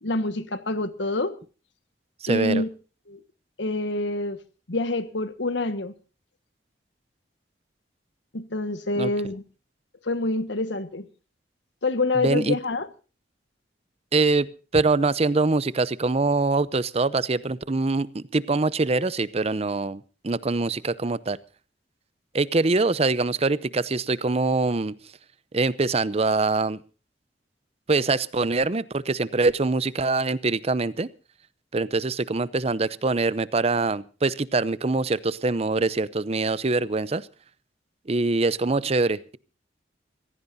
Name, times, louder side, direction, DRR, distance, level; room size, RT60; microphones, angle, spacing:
voice 1, 0.0-1.3 2.3-2.7 3.1-3.2 3.6-4.4 4.7-5.9 8.3-9.4 10.0-11.0 11.8-12.9, left 2 dB, 80° left, 11 dB, 1.6 m, -26 dB
voice 2, 2.2-2.6 9.0-9.1 12.1-12.6 14.1-14.5 14.7-21.4 22.3-25.0 25.5-26.8 27.9-31.1 31.7-37.3 38.1-39.4, right 3 dB, 35° right, 18 dB, 0.6 m, -24 dB
24.5 x 16.0 x 2.7 m, 0.36 s
head